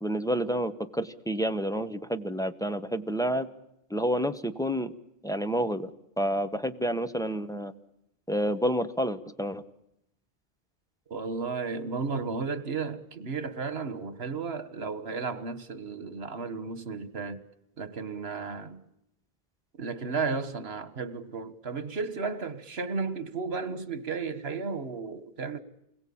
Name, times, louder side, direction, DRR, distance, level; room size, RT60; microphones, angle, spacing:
voice 1, 0.0-3.5 3.9-4.9 5.2-5.9 6.2-7.7 8.3-9.6, equal, 5° left, 1.1 m, -29 dB
voice 2, 11.1-17.4 17.8-18.8 19.8-25.6, right 4 dB, 80° right, 1.7 m, -34 dB
28.0 x 22.0 x 8.7 m
omnidirectional pair, 1.0 m